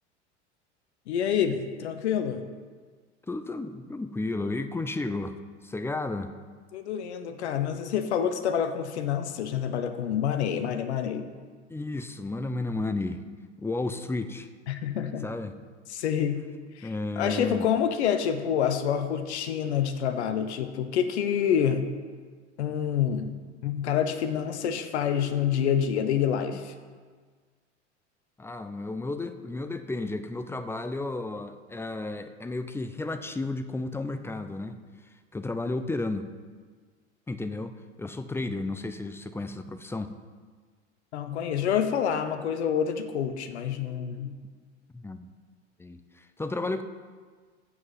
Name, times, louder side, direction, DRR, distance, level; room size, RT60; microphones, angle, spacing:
voice 1, 1.1-2.5 6.7-11.3 14.7-15.3 15.9-16.4 16.8-21.9 22.6-23.3 23.6-26.7 41.1-44.3, left 8 dB, 70° left, 8 dB, 0.9 m, -27 dB
voice 2, 3.3-5.4 5.6-6.3 11.7-13.2 13.6-14.5 15.2-15.5 16.8-17.6 28.4-34.8 35.3-36.3 37.3-37.7 38.0-40.1 44.9-45.3 45.8-46.8, left 2 dB, 5° left, 9 dB, 0.5 m, -33 dB
7.9 x 6.2 x 7.3 m, 1.5 s
figure-of-eight pair, 80°, 35 cm